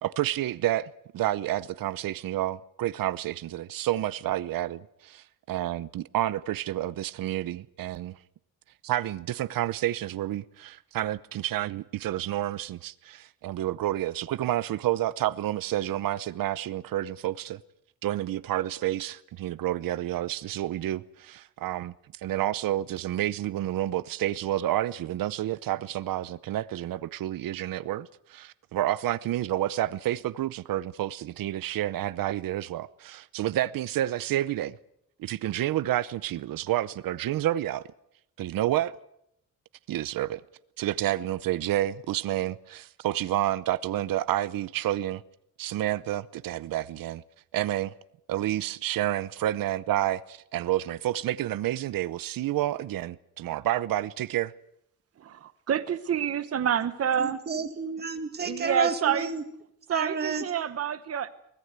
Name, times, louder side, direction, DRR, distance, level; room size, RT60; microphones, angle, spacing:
voice 1, 0.0-8.2 8.8-17.6 18.0-21.9 22.2-34.8 35.2-37.8 38.4-39.0 39.9-40.4 40.8-45.2 45.6-47.2 47.5-47.9 48.3-54.5, right 13 dB, 85° right, 0.8 m, -29 dB
voice 2, 55.2-57.4 58.4-59.3 59.9-61.3, right 8 dB, 45° right, 1.0 m, -28 dB
voice 3, 57.2-59.4 59.9-60.4, right 4 dB, 30° right, 2.1 m, -31 dB
24.0 x 17.5 x 8.1 m
wide cardioid pair, 175°, 33 cm